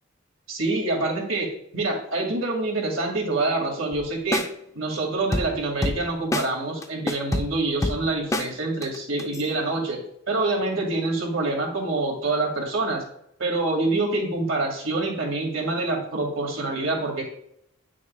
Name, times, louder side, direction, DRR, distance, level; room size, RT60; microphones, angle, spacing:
voice 1, 0.5-4.4 4.7-13.0 13.4-17.2, right 2 dB, 75° right, 0 dB, 2.0 m, -26 dB
sound 1, 3.9-4.1 4.3-4.5 5.3-6.1 6.3-6.5 6.8-8.5 8.8-9.5, left 1 dB, 15° left, 0.4 m, -26 dB
9.2 x 6.3 x 2.3 m, 0.74 s
head